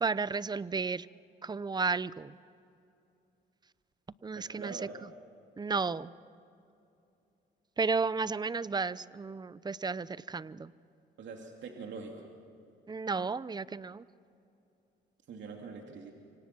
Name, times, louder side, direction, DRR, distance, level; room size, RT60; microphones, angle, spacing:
voice 1, 0.0-1.1 1.4-2.4 4.2-4.8 5.6-6.1 7.8-10.7 12.9-14.0, right 4 dB, 20° right, 18 dB, 0.6 m, -33 dB
voice 2, 4.3-5.0 11.2-12.3 15.3-16.1, right 5 dB, 65° right, 1 dB, 2.8 m, -44 dB
25.5 x 25.5 x 6.1 m, 2.7 s
cardioid pair, 90°, 20 cm